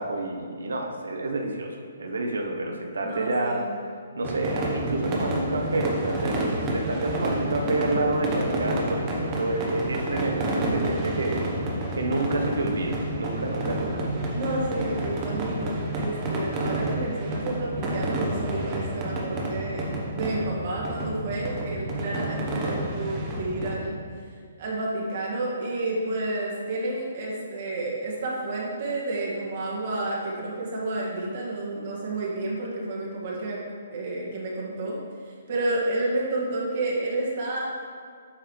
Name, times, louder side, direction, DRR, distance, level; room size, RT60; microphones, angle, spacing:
voice 1, 0.0-3.6 4.1-11.5 12.0-14.0, right 2 dB, 90° right, 2 dB, 0.9 m, -28 dB
voice 2, 3.0-3.7 14.3-24.0 24.6-33.6 33.9-35.0 35.2-37.7, right 2 dB, 50° right, -4 dB, 1.7 m, -30 dB
sound 1, 4.2-23.7, right 1 dB, 25° right, 1.0 m, -30 dB
8.4 x 5.0 x 3.2 m, 2.1 s
hypercardioid pair, 155°, 0 cm